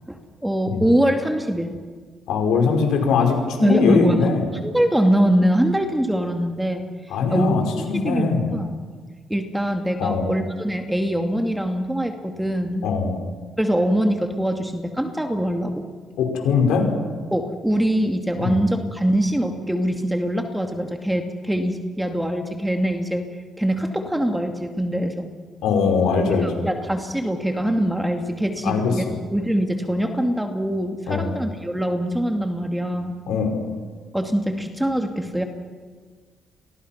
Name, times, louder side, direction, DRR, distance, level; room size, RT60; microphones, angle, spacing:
voice 1, 0.1-1.8 3.6-4.2 4.6-6.8 7.3-8.7 9.3-12.9 13.6-15.9 17.3-25.3 26.3-29.1 29.3-33.2 34.1-35.4, equal, 5° right, 4 dB, 2.3 m, -23 dB
voice 2, 2.3-4.4 7.1-8.4 10.0-10.3 12.8-13.1 16.2-16.9 18.4-18.6 25.6-26.7 28.6-28.9 31.1-31.3 33.3-33.5, left 5 dB, 90° left, 3 dB, 5.2 m, -21 dB
30.0 x 23.5 x 6.0 m, 1.5 s
cardioid pair, 90°, 0 cm